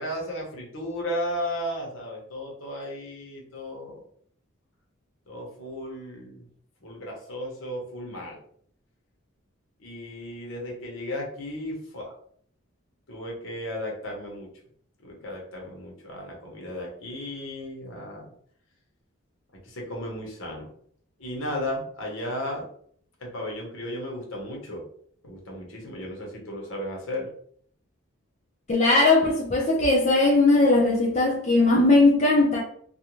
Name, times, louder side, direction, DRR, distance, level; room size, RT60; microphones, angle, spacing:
voice 1, 0.0-4.0 5.3-6.4 6.8-8.4 9.8-12.1 13.1-14.5 15.0-18.3 19.6-20.7 21.2-22.7 23.2-24.8 25.2-27.3, left 1 dB, 70° left, 0.9 m, -34 dB
voice 2, 28.7-32.6, left 2 dB, 30° left, 0.4 m, -19 dB
2.4 x 2.2 x 2.9 m
head